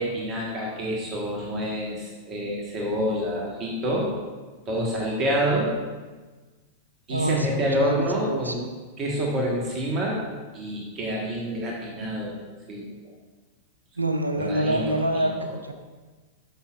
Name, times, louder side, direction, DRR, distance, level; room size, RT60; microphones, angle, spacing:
voice 1, 0.0-4.1 4.7-5.7 7.1-8.6 9.0-10.2 10.5-12.4 12.7-12.8 14.4-15.3, equal, 30° right, -2 dB, 1.4 m, -27 dB
voice 2, 7.1-7.5 7.8-8.7 14.0-15.7, right 1 dB, 85° right, 6 dB, 0.7 m, -26 dB
12.5 x 5.7 x 2.5 m, 1.3 s
figure-of-eight pair, 95°, 0 cm